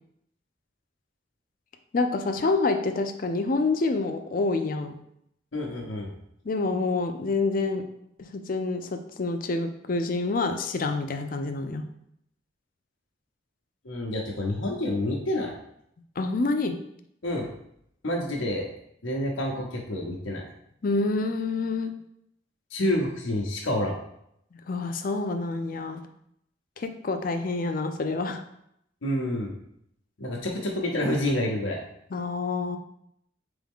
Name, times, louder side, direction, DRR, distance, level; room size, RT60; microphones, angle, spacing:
voice 1, 1.9-4.9 6.4-7.8 8.2-11.8 16.2-16.8 20.8-21.9 24.7-26.0 26.8-28.4 32.1-32.8, left 3 dB, 45° left, 7 dB, 0.4 m, -27 dB
voice 2, 5.5-6.1 13.8-15.5 17.2-17.5 18.0-18.7 19.0-20.4 22.7-23.9 29.0-29.5 30.2-31.8, left 1 dB, 85° left, -1 dB, 0.8 m, -28 dB
4.2 x 3.5 x 3.6 m, 0.74 s
head